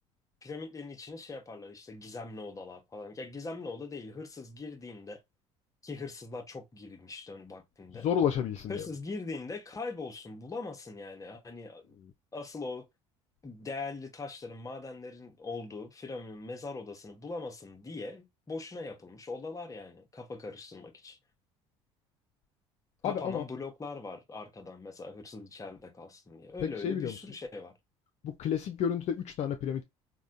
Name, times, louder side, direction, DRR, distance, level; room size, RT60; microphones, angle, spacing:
voice 1, 0.4-5.2 5.8-8.1 8.7-12.0 12.3-12.8 13.4-21.2 23.0-27.7, left 3 dB, 20° left, 0.8 m, -41 dB
voice 2, 7.9-8.9 23.0-23.4 26.6-27.2 28.2-29.8, left 8 dB, 45° left, 0.4 m, -31 dB
3.4 x 2.2 x 2.5 m
hypercardioid pair, 65°, 16 cm